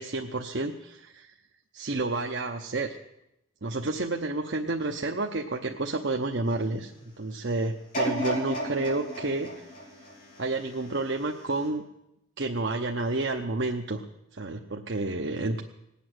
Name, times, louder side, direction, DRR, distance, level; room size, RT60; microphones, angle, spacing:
voice 1, 0.0-1.3 1.7-3.0 3.6-9.7 10.4-11.8 12.4-14.0 14.3-15.6, right 2 dB, 60° right, 2 dB, 0.9 m, -30 dB
sound 1, 7.9-11.0 11.6-11.7, equal, 40° left, 6.0 m, -33 dB
19.0 x 8.5 x 7.8 m, 0.86 s
head